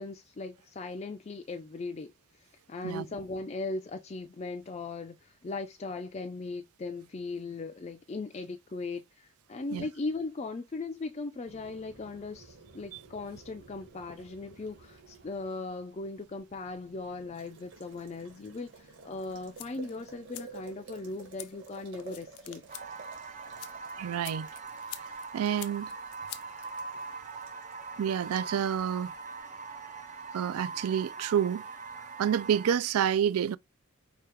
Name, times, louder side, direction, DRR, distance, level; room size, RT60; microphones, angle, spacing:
voice 1, 0.0-22.6, left 3 dB, 30° left, 0.4 m, -38 dB
Boiling, 11.5-29.4, right 4 dB, 55° right, 1.6 m, -53 dB
sound 1, 19.2-27.2, left 13 dB, 90° left, 0.6 m, -49 dB
sound 2, 22.7-32.7, right 4 dB, 35° right, 0.8 m, -42 dB
voice 2, 24.0-24.5 25.3-25.9 28.0-29.1 30.3-31.6 32.2-33.6, right 8 dB, 80° right, 0.3 m, -28 dB
4.8 x 2.4 x 4.5 m
head